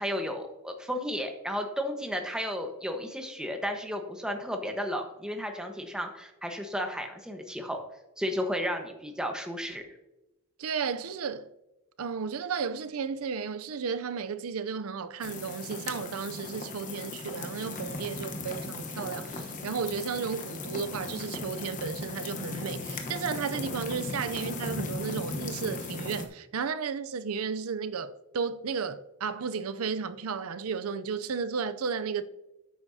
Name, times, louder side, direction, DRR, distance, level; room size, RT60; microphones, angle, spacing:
voice 1, 0.0-7.8 8.2-9.8, equal, 5° right, 1.2 m, -33 dB
voice 2, 10.6-11.5 12.0-32.2, right 6 dB, 85° right, 0.6 m, -33 dB
sound 1, 15.2-26.3, left 3 dB, 35° left, 1.0 m, -37 dB
11.0 x 8.7 x 2.8 m
head